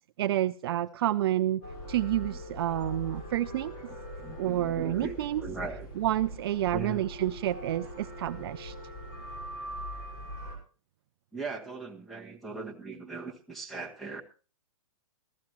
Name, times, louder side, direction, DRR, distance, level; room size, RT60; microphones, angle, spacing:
voice 1, 0.2-1.6 1.9-3.7 4.4-5.4 6.0-8.7, right 13 dB, 45° right, 11 dB, 0.5 m, -29 dB
sound 1, 1.6-10.6, equal, 35° left, 5.6 m, -42 dB
voice 2, 3.9-5.1 5.4-5.9 6.7-7.1 11.3-14.2, right 4 dB, ahead, 7 dB, 1.5 m, -39 dB
15.5 x 13.5 x 3.0 m, 0.35 s
hypercardioid pair, 155°, 17 cm